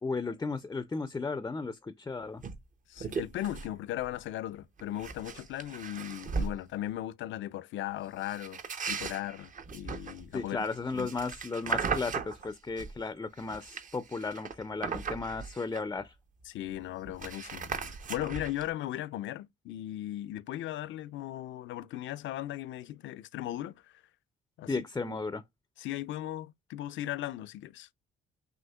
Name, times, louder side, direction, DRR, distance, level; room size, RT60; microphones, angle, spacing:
voice 1, 0.0-2.4 10.3-16.1 24.7-25.4, left 4 dB, 15° left, 0.4 m, -35 dB
sound 1, 2.4-2.6 3.0-3.7 4.0-4.3 4.8-6.6 8.2-13.0 13.4-16.1 16.4-16.5 16.7-18.7, right 5 dB, 40° right, 0.6 m, -37 dB
voice 2, 2.9-8.6 8.9-10.7 10.9-11.1 16.5-23.8 24.6-25.2 25.8-27.9, left 13 dB, 75° left, 0.4 m, -37 dB
6.2 x 2.4 x 2.2 m
cardioid pair, 90°, 20 cm